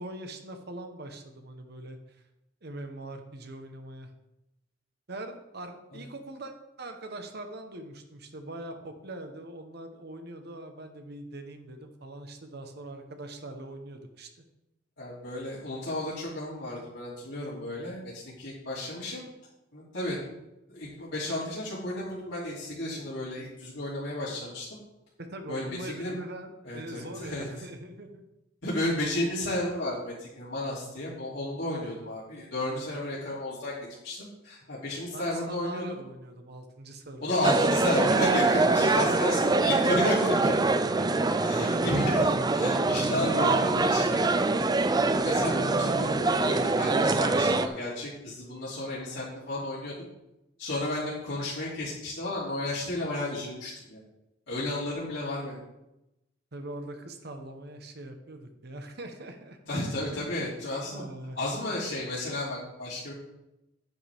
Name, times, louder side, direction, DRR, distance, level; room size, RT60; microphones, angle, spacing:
voice 1, 0.0-2.0 2.6-4.1 5.1-14.3 25.2-28.2 35.1-37.3 38.9-39.6 40.9-41.3 56.5-59.6 60.1-60.6 60.8-61.4, right 1 dB, 60° right, 6 dB, 1.1 m, -42 dB
voice 2, 15.0-19.3 19.7-20.2 20.7-24.6 25.5-26.2 26.6-27.5 28.6-36.0 37.2-40.5 41.4-44.2 45.1-49.9 50.6-54.0 54.5-55.6 59.7-61.0 61.3-63.1, left 1 dB, 85° left, -10 dB, 3.0 m, -32 dB
sound 1, 37.4-47.7, right 3 dB, 20° right, 0.4 m, -24 dB
9.6 x 8.8 x 3.6 m, 0.91 s
head